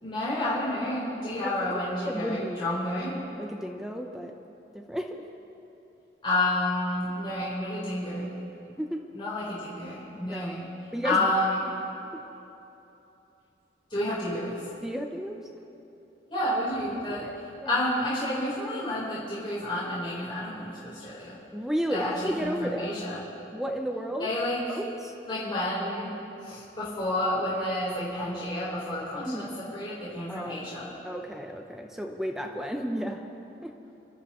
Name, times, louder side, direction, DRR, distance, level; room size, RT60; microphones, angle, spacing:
voice 1, 0.0-3.1 6.2-8.3 9.1-10.7 11.0-11.6 13.9-14.6 16.3-21.3 21.9-23.3 24.2-24.8 25.3-26.1 26.4-30.9, left 1 dB, 30° left, -10 dB, 4.2 m, -30 dB
voice 2, 2.1-2.7 3.4-4.3 4.7-5.2 8.8-9.0 10.2-10.5 10.9-11.3 14.8-15.4 17.2-17.3 17.6-17.8 21.5-22.9 23.5-24.3 24.7-25.1 29.2-29.5 30.3-30.6 31.0-33.2 33.6-33.7, equal, ahead, 2 dB, 0.8 m, -32 dB
29.0 x 12.5 x 3.1 m, 2.9 s
head